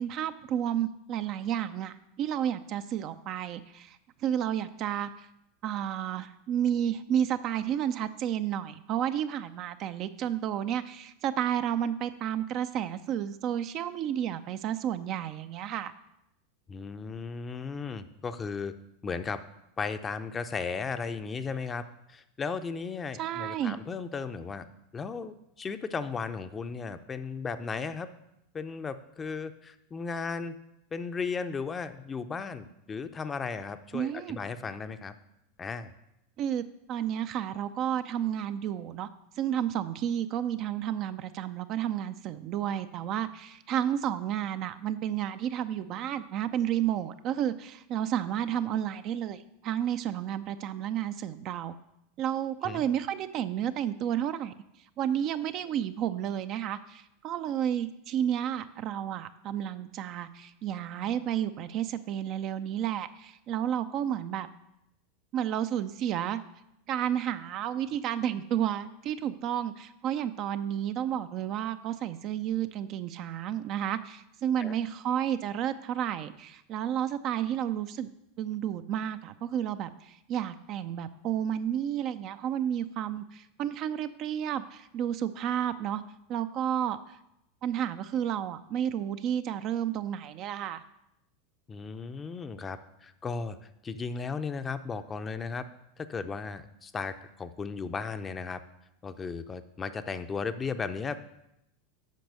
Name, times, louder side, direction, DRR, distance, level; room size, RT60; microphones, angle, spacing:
voice 1, 0.0-5.3 5.6-15.9 23.2-23.8 33.9-34.4 36.4-39.1 39.4-51.7 52.2-54.5 55.0-64.5 65.3-66.4 66.9-78.1 78.4-86.0 86.3-87.0 87.6-90.8, right 10 dB, 40° right, 11 dB, 0.5 m, -31 dB
voice 2, 16.7-18.7 19.0-19.4 19.8-24.7 24.9-28.1 28.5-30.6 30.9-35.1 35.6-35.9 52.6-52.8 74.6-74.7 91.7-93.6 93.8-95.7 96.0-98.6 99.0-101.2, left 5 dB, 20° left, 10 dB, 0.6 m, -35 dB
8.3 x 6.0 x 6.6 m, 0.84 s
figure-of-eight pair, 85°, 0 cm